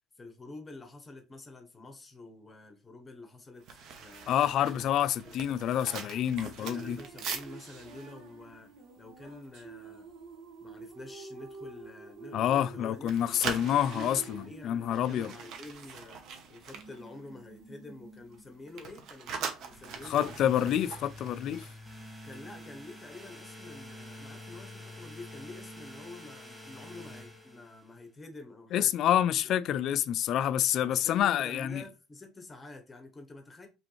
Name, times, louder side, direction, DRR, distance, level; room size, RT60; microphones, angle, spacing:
voice 1, 0.2-4.4 4.7-4.9 5.2-5.4 6.4-8.7 9.0-10.1 10.6-16.2 16.5-20.4 22.2-29.0 29.4-29.5 30.9-33.7, left 2 dB, 15° left, 0.8 m, -48 dB
sound 1, 3.6-9.7 10.0-10.3 10.7-11.0 11.5-12.7 13.0-17.7 18.0-22.5 22.8-23.0, right 6 dB, 50° right, 0.9 m, -43 dB
voice 2, 4.3-7.0 12.3-15.3 20.0-21.7 28.7-31.8, left 10 dB, 45° left, 0.3 m, -28 dB
sound 2, 6.1-19.5, right 4 dB, 85° right, 1.2 m, -50 dB
sound 3, 19.7-28.0, left 1 dB, 5° right, 1.5 m, -48 dB
5.0 x 3.2 x 3.1 m
cardioid pair, 165°, 0 cm